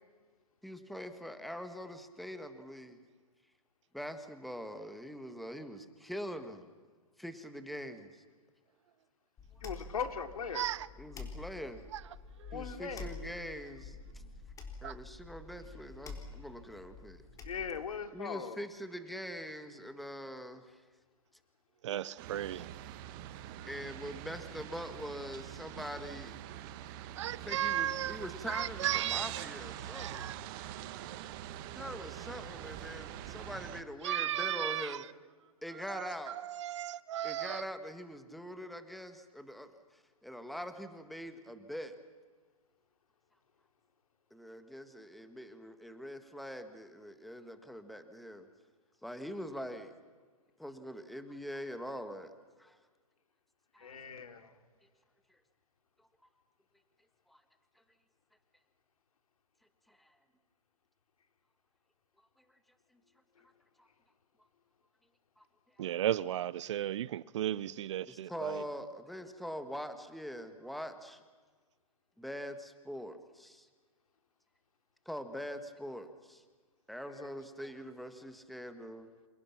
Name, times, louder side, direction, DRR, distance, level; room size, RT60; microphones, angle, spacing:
voice 1, 0.6-3.0 3.9-6.7 7.2-8.1 11.0-11.8 12.5-14.2 14.8-17.2 18.1-20.8 23.1-23.2 23.7-26.4 27.4-30.3 31.7-35.0 35.6-36.4 37.2-41.9 44.3-48.5 49.0-49.9 50.6-52.3 52.6-52.8 53.7-53.9 55.3-55.4 56.2-56.3 57.3-57.4 59.9-60.1 63.8-63.9 65.4-65.5 68.1-71.2 72.2-73.7 75.0-76.4 76.9-79.1, equal, ahead, 1.7 m, -43 dB
sound 1, 9.4-18.0, left 4 dB, 20° left, 3.8 m, -48 dB
voice 2, 9.6-10.7 12.5-13.1 17.4-18.6 53.8-54.5 77.1-77.3, left 6 dB, 75° left, 3.1 m, -39 dB
voice 3, 10.5-10.9 11.9-12.0 12.4-12.5 14.8-15.0 21.8-22.7 27.1-28.2 28.5-29.4 29.9-30.4 30.9-31.3 34.0-35.1 35.9-37.6 65.8-68.6, right 12 dB, 55° right, 0.8 m, -35 dB
sound 2, 22.2-33.8, right 11 dB, 35° right, 1.8 m, -45 dB
28.5 x 28.0 x 6.0 m
hypercardioid pair, 135°, 19 cm